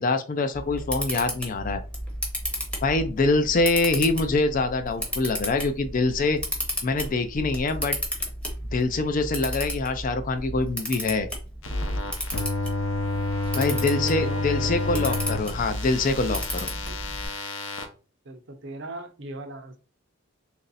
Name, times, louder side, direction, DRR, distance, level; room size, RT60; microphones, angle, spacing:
voice 1, 0.0-1.8 2.8-6.4 6.8-8.0 8.7-11.3 13.6-16.7, left 3 dB, 40° left, 9 dB, 0.4 m, -24 dB
Camera, 0.5-17.3, equal, 5° left, 0.8 m, -33 dB
sound 1, 11.6-17.9, left 2 dB, 75° left, 0.7 m, -29 dB
voice 2, 13.5-15.2 18.2-19.8, right 2 dB, 60° right, 7 dB, 0.6 m, -38 dB
3.1 x 2.6 x 4.0 m, 0.35 s
head